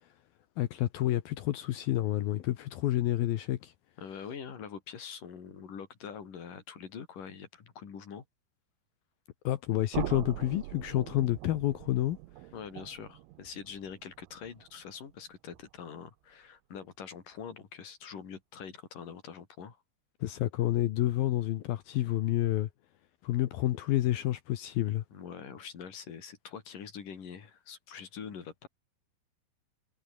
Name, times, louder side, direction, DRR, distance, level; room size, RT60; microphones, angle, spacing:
voice 1, 0.6-3.7 9.4-12.2 20.2-22.7 23.2-25.0, left 14 dB, 70° left, 2.5 m, -29 dB
voice 2, 4.0-8.2 12.5-19.8 25.1-28.7, left 7 dB, 50° left, 4.9 m, -44 dB
sound 1, 9.9-15.8, right 19 dB, 90° right, 3.2 m, -43 dB
omnidirectional pair, 5.2 m